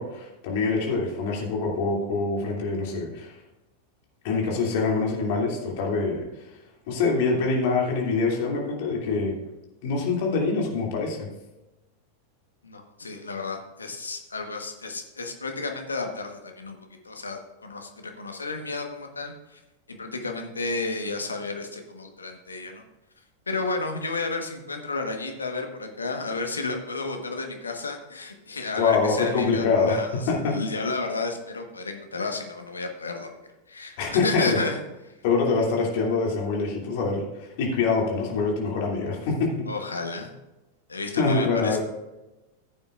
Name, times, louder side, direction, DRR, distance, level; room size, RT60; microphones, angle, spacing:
voice 1, 0.0-3.4 4.2-6.2 6.9-9.3 9.8-11.3 28.8-30.6 34.0-34.6 35.2-39.7 41.2-41.8, left 4 dB, 50° left, -1 dB, 2.7 m, -25 dB
voice 2, 12.6-19.6 19.9-22.8 23.5-33.3 33.7-34.8 39.7-40.3 40.9-41.8, left 3 dB, 75° left, 4 dB, 1.3 m, -32 dB
14.5 x 8.7 x 2.5 m, 1.0 s
figure-of-eight pair, 90°, 0 cm